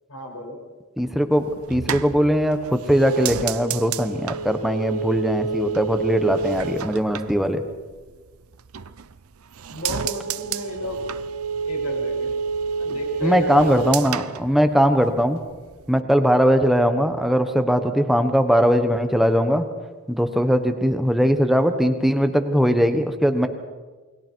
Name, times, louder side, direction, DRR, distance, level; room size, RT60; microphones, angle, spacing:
voice 1, 0.1-0.6 9.7-11.0 11.6-12.3 12.8-13.7, left 1 dB, 85° left, 0 dB, 6.4 m, -33 dB
voice 2, 1.0-7.6 13.2-15.4 15.9-19.6 20.1-23.5, equal, ahead, 7 dB, 1.3 m, -20 dB
sound 1, 1.4-8.2 8.5-9.2 9.5-15.2 15.5-16.0, right 5 dB, 80° right, 0.7 m, -29 dB
28.5 x 21.5 x 4.7 m, 1.3 s
head